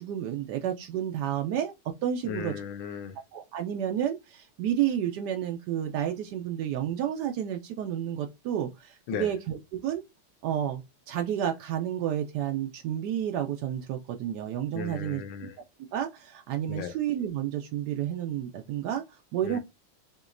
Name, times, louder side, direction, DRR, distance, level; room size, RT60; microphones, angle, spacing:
voice 1, 0.0-1.7 2.0-2.5 3.3-10.0 10.4-15.5 15.9-19.6, right 10 dB, 80° right, 0.9 m, -31 dB
voice 2, 2.3-3.2 9.1-9.3 14.7-15.5 16.7-16.9 19.4-19.6, left 8 dB, 80° left, 1.4 m, -36 dB
5.0 x 2.9 x 2.5 m
omnidirectional pair, 2.3 m